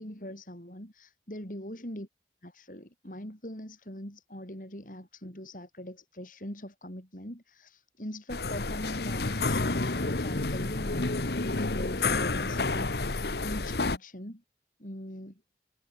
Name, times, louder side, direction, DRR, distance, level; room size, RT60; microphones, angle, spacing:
voice 1, 0.0-2.1 2.4-14.4 14.8-15.4, equal, 50° left, 6.0 m, -41 dB
sound 1, 8.3-14.0, left 3 dB, 70° left, 1.3 m, -30 dB
head